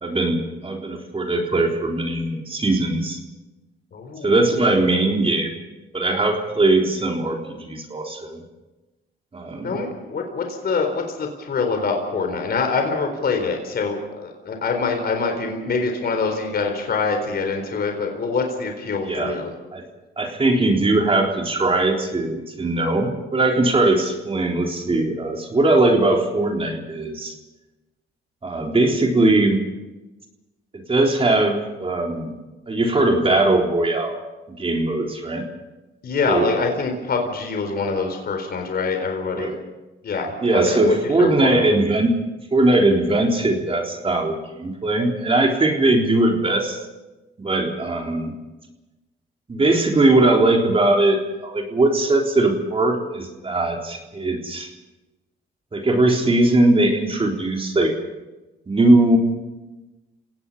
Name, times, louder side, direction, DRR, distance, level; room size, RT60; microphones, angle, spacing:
voice 1, 0.0-3.2 4.2-5.6 5.9-8.4 9.3-9.8 19.0-19.4 19.7-19.8 20.2-27.3 28.4-29.6 30.7-32.3 32.7-34.2 34.5-35.4 36.3-36.5 39.3-39.6 40.4-42.1 42.5-46.8 47.4-48.3 49.5-54.7 55.7-57.9 58.7-59.2, right 2 dB, 30° right, 1 dB, 3.8 m, -20 dB
voice 2, 3.9-4.6 9.6-19.5 36.0-39.7 40.0-41.6, left 4 dB, 50° left, 4 dB, 4.1 m, -25 dB
29.5 x 18.0 x 5.6 m, 1.1 s
cardioid pair, 90°, 20 cm